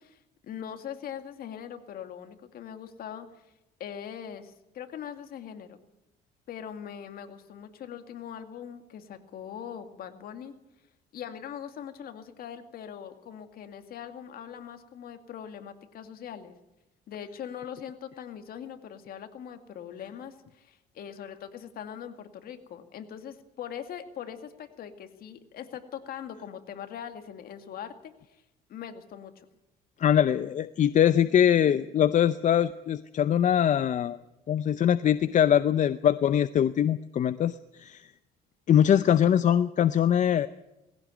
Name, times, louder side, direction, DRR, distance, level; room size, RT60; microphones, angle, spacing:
voice 1, 0.0-3.3 3.8-5.8 6.5-10.5 11.1-16.6 17.1-28.4 28.7-29.5, left 9 dB, 60° left, 7 dB, 2.2 m, -41 dB
voice 2, 30.0-34.2 34.5-38.0 38.7-40.5, left 9 dB, 45° left, 13 dB, 0.7 m, -22 dB
19.5 x 16.5 x 9.1 m, 0.93 s
cardioid pair, 110°, 17 cm